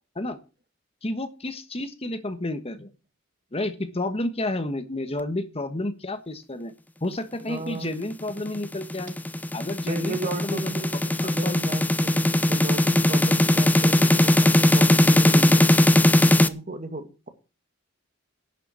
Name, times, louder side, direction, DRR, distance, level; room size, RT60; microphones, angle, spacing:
voice 1, 1.0-2.9 3.5-6.7 7.0-9.2 9.5-10.7 11.2-11.6, left 2 dB, 30° left, 9 dB, 1.3 m, -31 dB
voice 2, 7.5-7.9 9.8-15.7 16.2-17.3, right 2 dB, 40° right, 8 dB, 2.1 m, -34 dB
sound 1, 8.4-16.5, left 1 dB, 10° left, 0.7 m, -19 dB
11.0 x 6.9 x 8.2 m, 0.32 s
head